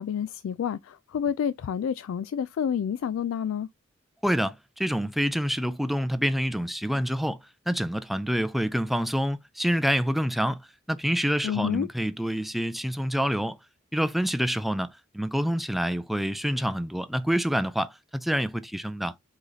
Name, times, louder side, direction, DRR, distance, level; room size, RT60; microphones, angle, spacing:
voice 1, 0.0-3.7 11.4-11.9, left 8 dB, 90° left, 0.3 m, -29 dB
voice 2, 4.2-7.4 7.7-10.6 10.9-13.6 13.9-19.1, equal, ahead, 0.4 m, -27 dB
4.8 x 3.8 x 2.7 m
head